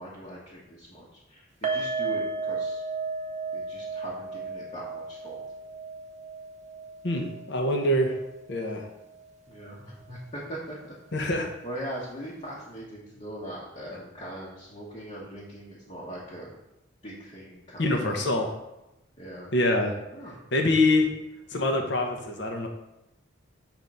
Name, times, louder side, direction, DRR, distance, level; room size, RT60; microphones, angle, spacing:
voice 1, 0.0-2.8 3.5-5.4 9.5-11.3 11.6-16.5 17.0-18.5 19.2-19.5 20.1-20.4, right 1 dB, 35° left, -7 dB, 1.1 m, -41 dB
sound 1, 1.6-8.8 9.1-9.3 9.7-9.8, right 4 dB, 35° right, 0.7 m, -34 dB
voice 2, 7.0-8.2 8.5-8.9 11.1-11.5 17.8-18.5 19.5-19.9 20.5-21.1 21.5-22.7, left 1 dB, 60° left, 3 dB, 0.9 m, -25 dB
6.0 x 3.6 x 5.3 m, 0.92 s
head